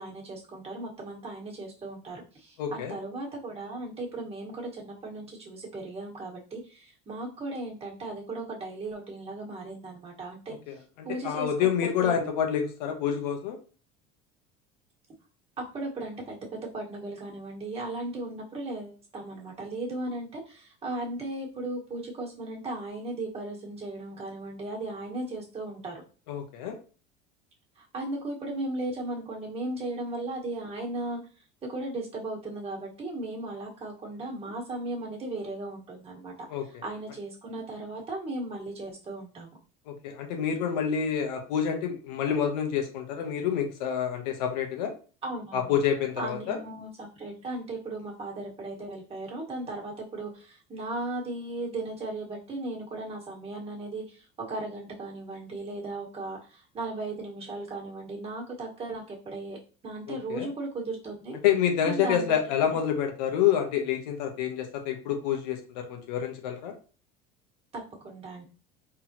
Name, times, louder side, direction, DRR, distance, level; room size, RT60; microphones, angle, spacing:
voice 1, 0.0-10.5 11.0-12.1 15.6-26.0 27.8-31.2 31.6-36.3 36.6-39.6 45.2-45.8 46.2-59.6 59.8-61.4 61.8-62.3 62.6-62.8 67.7-68.4, right 2 dB, 30° right, -2 dB, 1.7 m, -36 dB
voice 2, 2.6-3.0 10.7-13.6 26.3-26.8 36.5-36.6 39.9-44.9 45.5-46.6 60.1-60.5 61.4-66.7, left 8 dB, 90° left, 3 dB, 1.1 m, -28 dB
4.1 x 3.5 x 3.0 m, 0.37 s
supercardioid pair, 110°, 21 cm